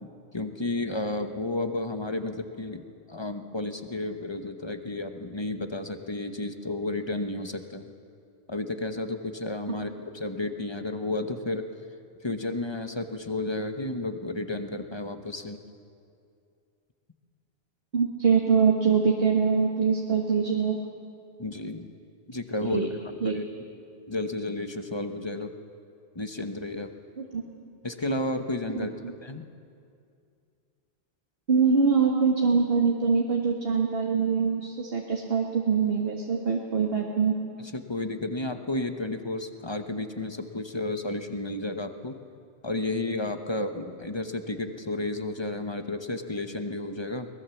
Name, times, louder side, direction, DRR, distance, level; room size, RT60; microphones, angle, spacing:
voice 1, 0.0-7.9 8.5-11.7 12.2-15.6 21.4-21.9 22.3-23.5 24.1-25.5 26.1-26.9 27.8-28.9 29.2-29.5 37.6-42.2 42.6-47.3, left 2 dB, 25° left, 7 dB, 1.0 m, -32 dB
voice 2, 17.9-20.8 22.7-22.9 23.2-23.4 27.2-27.4 28.7-28.9 31.5-37.4, right 5 dB, 60° right, 1 dB, 1.6 m, -24 dB
23.0 x 19.5 x 7.1 m, 2.4 s
omnidirectional pair, 1.1 m